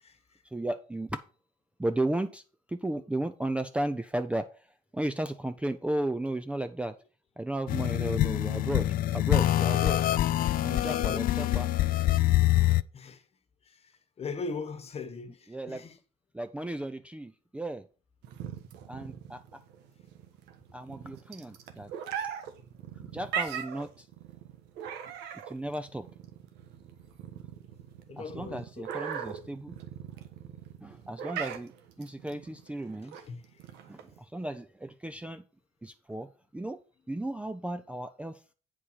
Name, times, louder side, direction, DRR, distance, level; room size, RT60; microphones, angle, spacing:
voice 1, 0.4-1.2 1.8-2.4 2.7-4.5 4.9-7.0 7.4-8.9 9.1-10.0 10.6-11.7 15.5-15.9 16.3-17.8 18.9-19.4 20.7-21.9 23.0-24.1 25.5-26.1 28.2-29.8 30.8-31.7 32.0-33.2 33.9-35.4 35.8-36.8 37.1-38.4, right 1 dB, 5° right, 0.5 m, -34 dB
sound 1, 7.7-12.8, left 14 dB, 60° left, 0.4 m, -25 dB
voice 2, 10.6-11.6 12.9-13.2 14.2-15.4 15.7-15.9 28.1-28.9 33.3-33.4, left 4 dB, 35° left, 1.2 m, -39 dB
sound 2, 18.2-34.2, right 8 dB, 90° right, 1.3 m, -40 dB
8.4 x 4.8 x 5.6 m
cardioid pair, 110°, 17 cm